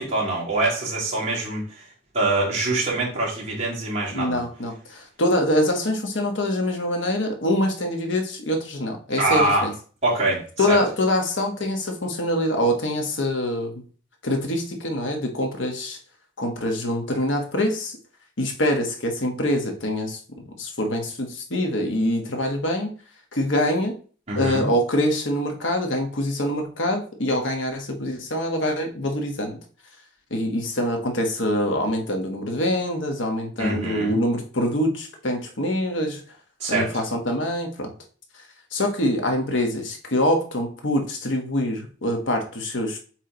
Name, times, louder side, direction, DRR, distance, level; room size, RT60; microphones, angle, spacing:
voice 1, 0.0-1.6 2.1-4.4 9.2-9.7 10.0-10.4 10.7-10.8 24.3-24.7 33.6-34.2 36.6-36.9, right 2 dB, 35° right, -5 dB, 2.7 m, -24 dB
voice 2, 4.1-9.7 10.6-13.8 14.2-16.0 16.4-18.0 18.4-22.9 23.3-24.0 24.4-29.6 30.3-36.2 36.7-37.9 38.7-43.0, left 1 dB, 90° left, 3 dB, 1.3 m, -25 dB
7.4 x 3.3 x 3.9 m, 0.40 s
head